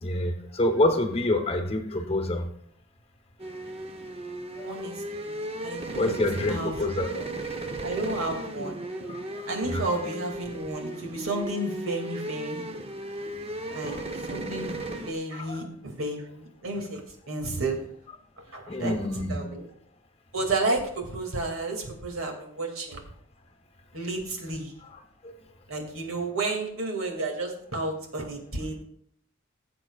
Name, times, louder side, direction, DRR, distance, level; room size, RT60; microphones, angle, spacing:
voice 1, 0.0-2.5 4.6-4.8 6.0-7.5 9.0-9.8 13.7-14.0 15.3-15.7 18.7-19.4 25.2-25.3, left 1 dB, 30° left, 6 dB, 0.9 m, -28 dB
sound 1, 3.4-15.1, right 1 dB, 30° right, 0.7 m, -36 dB
voice 2, 5.2-6.2 6.5-6.9 7.8-8.8 9.5-12.6 13.7-14.0 14.3-14.7 15.1-17.0 17.3-17.8 18.5-19.7 20.3-23.0 23.9-24.7 25.7-28.8, right 2 dB, 90° right, 2 dB, 2.3 m, -32 dB
17.0 x 7.7 x 2.4 m, 0.66 s
head